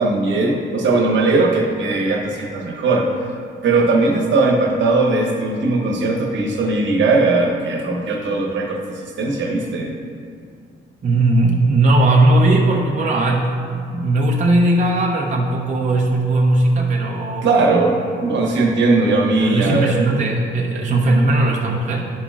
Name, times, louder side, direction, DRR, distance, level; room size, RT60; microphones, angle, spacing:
voice 1, 0.0-3.1 3.6-8.8 9.2-9.9 17.4-20.1 20.7-20.8, right 3 dB, 65° right, 0 dB, 1.2 m, -18 dB
voice 2, 11.0-17.8 19.4-22.1, right 2 dB, 40° right, -2 dB, 0.8 m, -18 dB
10.5 x 5.6 x 2.4 m, 2.2 s
cardioid pair, 90°, 20 cm